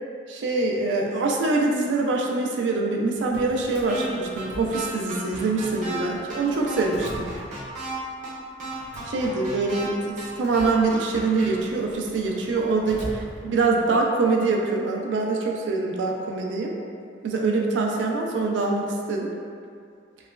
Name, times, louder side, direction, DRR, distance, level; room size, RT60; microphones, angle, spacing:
voice 1, 0.3-7.3 9.0-16.8 17.2-19.3, right 3 dB, 75° right, 0 dB, 0.3 m, -24 dB
Drawer open or close, 3.1-5.3 5.6-8.0 8.6-13.9, equal, 60° left, 0.5 m, -42 dB
sound 1, 3.9-4.1 4.4-4.5 4.7-6.0 6.3-6.4 6.7-7.9 8.2-8.3 8.6-9.9 10.2-10.3 10.5-11.5, right 3 dB, 45° right, 0.8 m, -34 dB
3.0 x 2.2 x 2.2 m, 2.3 s
head